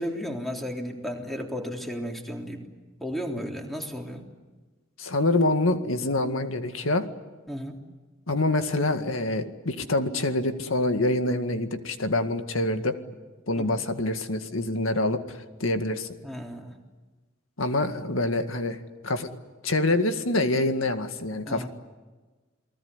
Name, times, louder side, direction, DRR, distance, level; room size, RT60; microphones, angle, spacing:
voice 1, 0.0-2.6 3.0-4.2 7.5-7.8 13.6-13.8 16.2-16.8 21.5-21.7, equal, ahead, 1 dB, 3.5 m, -34 dB
voice 2, 5.0-7.1 8.3-13.0 13.5-16.1 17.6-18.8 19.0-19.3 19.6-21.7, left 2 dB, 80° left, 7 dB, 2.0 m, -26 dB
29.0 x 20.0 x 9.8 m, 1.3 s
head